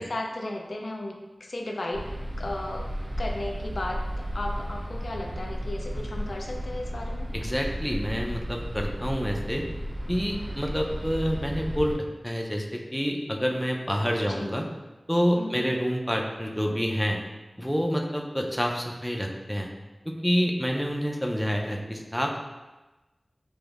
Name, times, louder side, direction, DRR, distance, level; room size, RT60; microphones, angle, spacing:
voice 1, 0.0-2.0 2.4-2.9 3.2-7.3 14.3-14.6 15.4-15.7, left 1 dB, 85° left, 1 dB, 0.3 m, -35 dB
sound 1, 1.9-12.0, equal, 85° right, 1.5 m, -34 dB
voice 2, 7.3-9.6 10.1-12.0 12.2-14.7 15.1-17.2 17.6-19.7 20.1-22.4, equal, 5° left, 1 dB, 0.4 m, -28 dB
5.0 x 2.0 x 2.3 m, 1.1 s
wide cardioid pair, 45°, 0 cm